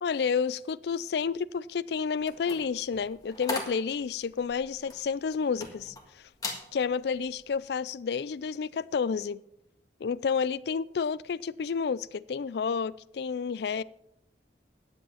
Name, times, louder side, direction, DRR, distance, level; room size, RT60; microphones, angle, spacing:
voice 1, 0.0-5.9 6.7-9.4 10.0-13.8, left 6 dB, 60° left, 0.3 m, -30 dB
sound 1, 2.2-6.0 6.3-6.7 7.1-7.4, left 2 dB, 20° left, 1.6 m, -38 dB
10.0 x 8.1 x 5.6 m
head